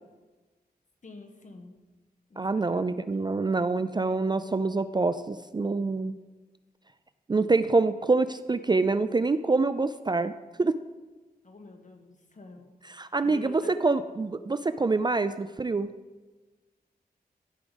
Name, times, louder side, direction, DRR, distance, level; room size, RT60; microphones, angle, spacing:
voice 1, 1.0-1.8 2.3-3.0 11.4-12.7 13.2-13.7, left 3 dB, 50° left, 4 dB, 1.3 m, -48 dB
voice 2, 2.4-6.1 7.3-10.3 10.6-10.7 12.9-15.9, right 3 dB, 25° right, 12 dB, 0.3 m, -26 dB
13.0 x 4.8 x 5.4 m, 1.2 s
wide cardioid pair, 100°, 16 cm